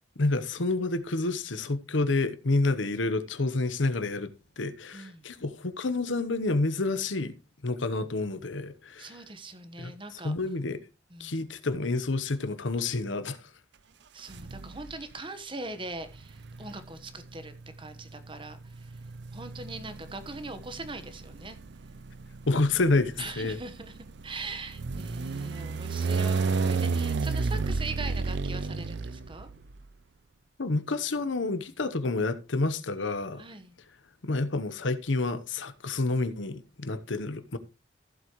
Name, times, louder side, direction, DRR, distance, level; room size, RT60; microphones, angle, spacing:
voice 1, 0.2-4.3 4.6-7.3 7.6-9.2 9.8-10.8 11.2-13.4 22.5-23.6 30.6-33.4 34.2-37.6, left 3 dB, 85° left, 1.0 m, -29 dB
voice 2, 4.9-5.3 9.0-10.4 11.1-11.3 14.1-18.9 19.3-21.6 23.2-24.0 24.2-29.5 33.4-33.7, right 2 dB, 25° right, 1.2 m, -41 dB
sound 1, 14.3-15.0 16.1-29.8, right 4 dB, 65° right, 0.5 m, -32 dB
15.0 x 7.9 x 3.1 m
head